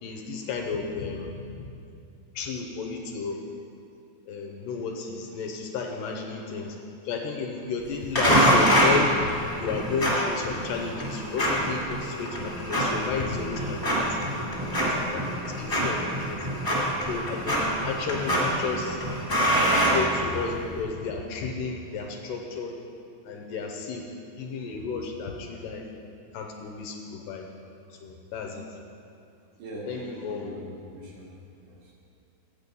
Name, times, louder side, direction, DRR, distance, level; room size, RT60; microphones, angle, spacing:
voice 1, 0.0-1.6 2.4-3.4 4.3-6.8 7.1-15.3 15.6-16.3 17.1-19.0 19.7-22.7 23.3-24.0 24.4-25.8 26.3-27.5 27.9-28.7 29.9-30.5, left 5 dB, 80° left, 2 dB, 2.2 m, -33 dB
sound 1, 8.1-20.6, equal, 10° left, 1.1 m, -25 dB
voice 2, 29.6-31.3 31.6-31.9, right 1 dB, 65° right, -3 dB, 2.6 m, -40 dB
8.8 x 8.1 x 5.3 m, 2.5 s
omnidirectional pair, 4.2 m